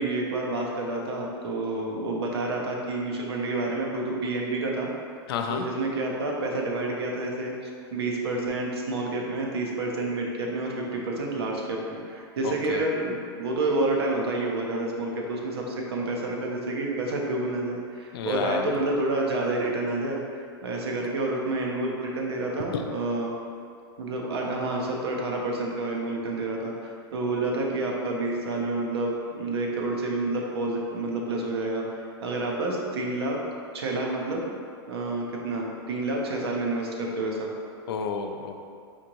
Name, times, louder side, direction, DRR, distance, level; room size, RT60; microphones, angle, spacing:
voice 1, 0.0-4.9 5.5-7.5 7.9-23.3 24.0-31.8 32.2-33.4 33.7-34.4 34.9-37.5, right 2 dB, 85° right, -1 dB, 0.7 m, -29 dB
voice 2, 5.3-5.7 12.4-12.8 18.1-18.8 22.7-22.8 37.9-38.6, left 6 dB, 70° left, 5 dB, 0.4 m, -30 dB
4.3 x 2.6 x 2.9 m, 2.3 s
hypercardioid pair, 125°, 13 cm